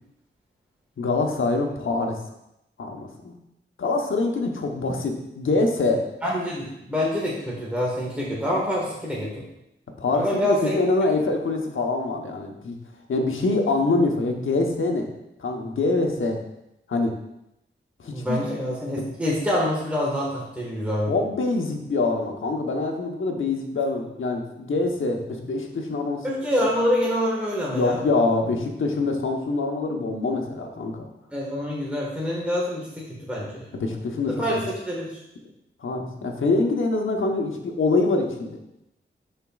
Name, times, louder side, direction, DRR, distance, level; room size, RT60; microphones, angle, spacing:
voice 1, 1.0-2.2 2.8-3.3 3.8-6.0 10.0-12.8 13.1-15.1 15.4-16.4 16.9-17.1 18.0-18.4 21.1-26.2 27.7-31.1 33.7-34.4 35.8-38.6, left 3 dB, 80° left, 2 dB, 1.0 m, -24 dB
voice 2, 6.2-9.4 10.1-10.8 18.1-21.2 26.2-28.0 31.3-33.7 34.3-35.2, equal, 5° right, -5 dB, 1.5 m, -26 dB
11.0 x 4.5 x 2.4 m, 0.84 s
wide cardioid pair, 75°, 20 cm